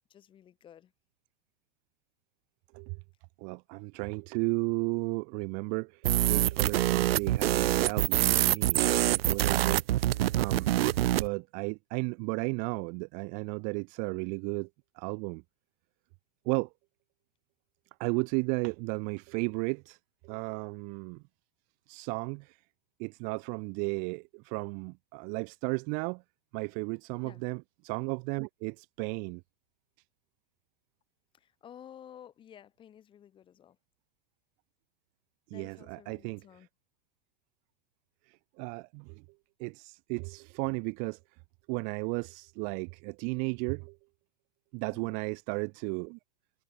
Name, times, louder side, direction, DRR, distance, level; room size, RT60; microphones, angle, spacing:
voice 1, 0.1-0.9 27.2-27.4 31.3-33.8 35.5-36.7 44.9-45.2, left 10 dB, 15° left, 3.8 m, -53 dB
voice 2, 3.4-9.8 10.3-10.7 11.1-14.7 14.9-15.4 16.4-16.7 18.0-20.0 20.2-21.2 21.9-22.6 23.0-26.2 26.5-29.4 35.5-36.4 38.3-39.2 39.6-41.2 41.7-44.0 44.7-46.2, right 37 dB, 25° right, 0.8 m, -34 dB
sound 1, 6.0-11.3, right 13 dB, 80° right, 0.9 m, -25 dB
supercardioid pair, 170°, 29 cm